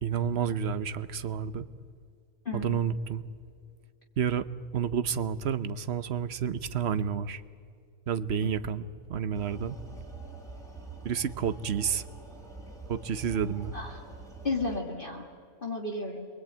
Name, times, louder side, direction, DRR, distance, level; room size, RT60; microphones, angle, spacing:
voice 1, 0.0-1.6 2.5-3.2 4.2-4.5 4.7-7.4 8.1-9.8 11.0-12.0 12.9-13.7, right 7 dB, 50° right, 13 dB, 1.0 m, -30 dB
voice 2, 2.5-2.8 8.4-8.5 13.7-13.9 14.4-15.3 15.6-16.3, left 3 dB, 35° left, 1 dB, 2.1 m, -33 dB
sound 1, 9.3-14.8, right 3 dB, ahead, 3.9 m, -45 dB
28.5 x 23.0 x 8.9 m, 2.2 s
omnidirectional pair, 1.6 m